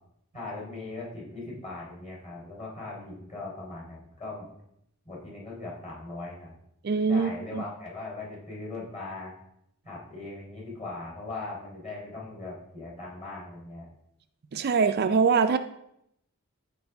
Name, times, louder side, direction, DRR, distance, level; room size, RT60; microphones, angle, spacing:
voice 1, 0.3-4.5 5.1-6.6 7.1-9.3 9.9-13.9, left 2 dB, 30° left, -4 dB, 3.6 m, -39 dB
voice 2, 6.8-7.6 14.5-15.6, right 5 dB, 50° right, 8 dB, 0.4 m, -23 dB
14.0 x 4.7 x 3.4 m, 0.77 s
head